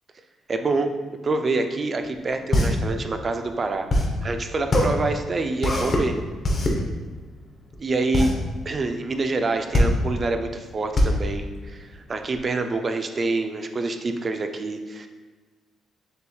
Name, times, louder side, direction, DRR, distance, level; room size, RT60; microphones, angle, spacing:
voice 1, 0.5-0.9 1.2-3.9 4.2-6.3 7.8-8.3 8.7-15.1, right 3 dB, 35° right, 6 dB, 0.4 m, -26 dB
sound 1, 2.0-12.4, left 1 dB, 40° left, 0.7 m, -23 dB
6.4 x 3.0 x 2.3 m, 1.3 s
cardioid pair, 90°, 0 cm